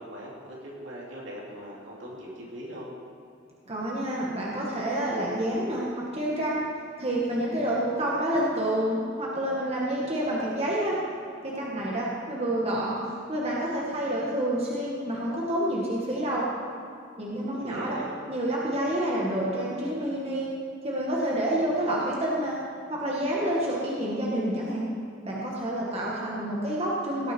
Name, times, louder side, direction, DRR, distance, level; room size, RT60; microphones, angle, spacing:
voice 1, 0.0-2.9 17.5-18.2, equal, 70° right, -4 dB, 2.9 m, -40 dB
voice 2, 3.7-6.6 7.0-11.0 11.4-13.0 13.3-16.5 17.2-18.0 18.3-20.5 20.8-22.6 22.9-24.9 25.2-27.3, right 1 dB, 30° right, -5 dB, 1.8 m, -28 dB
17.5 x 8.9 x 4.6 m, 2.5 s
head